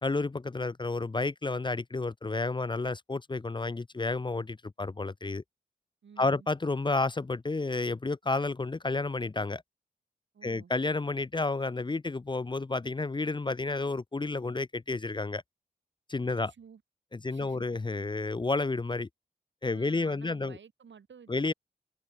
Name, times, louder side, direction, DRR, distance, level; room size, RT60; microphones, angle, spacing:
voice 1, 0.0-5.4 6.2-9.6 10.4-15.4 16.1-16.5 17.1-19.1 19.6-20.6 21.3-21.5, left 3 dB, 25° left, 0.6 m, -31 dB
voice 2, 6.0-6.5 10.3-10.7 16.2-16.8 17.3-17.7 19.7-21.5, right 6 dB, 85° right, 2.6 m, -52 dB
wide cardioid pair, 75°, 18 cm